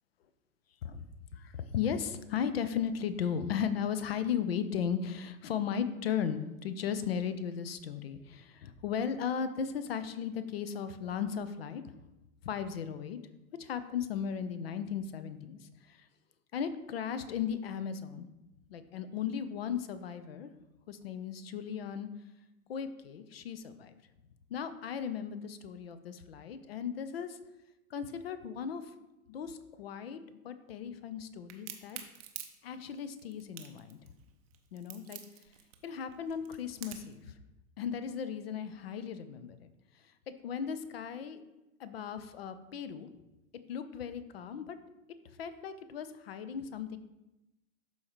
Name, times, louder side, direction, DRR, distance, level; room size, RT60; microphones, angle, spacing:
voice 1, 1.3-11.8 12.4-13.2 13.6-16.1 16.5-18.3 18.7-20.5 20.9-22.1 22.7-23.9 24.5-27.4 27.9-28.9 29.3-32.0 32.6-34.0 34.7-35.2 35.8-37.4 37.8-39.7 40.3-41.4 41.8-43.1 43.7-44.8 45.4-47.0, left 7 dB, 45° left, 12 dB, 0.6 m, -36 dB
Crack, 31.5-37.2, right 12 dB, 25° right, 0.6 m, -46 dB
12.0 x 4.3 x 3.0 m, 0.96 s
figure-of-eight pair, 105°, 43 cm